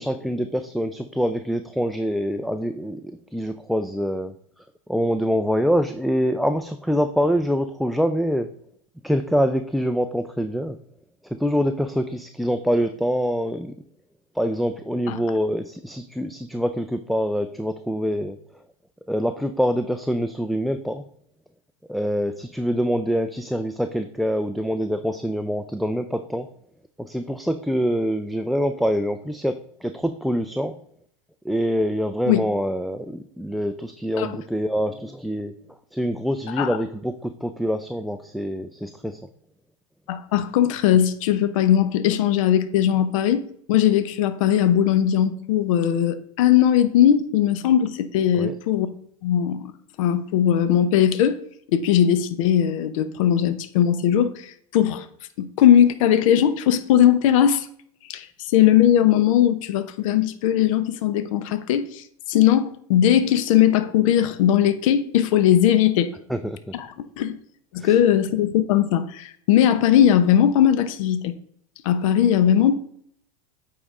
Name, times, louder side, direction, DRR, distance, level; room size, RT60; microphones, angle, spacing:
voice 1, 0.0-4.3 4.9-8.5 9.0-10.8 11.2-13.7 14.3-18.4 19.1-21.0 21.9-26.5 27.0-30.8 31.4-35.5 35.9-39.2 48.3-48.6 66.3-66.7 67.8-68.0, equal, ahead, 8 dB, 0.3 m, -25 dB
voice 2, 40.1-48.9 49.2-49.7 50.0-51.4 51.7-55.0 55.4-57.7 58.1-66.1 66.7-66.9 67.2-67.4 67.7-71.3 71.8-72.9, left 10 dB, 65° left, 12 dB, 0.8 m, -19 dB
8.5 x 4.8 x 3.7 m, 0.64 s
hypercardioid pair, 115°, 18 cm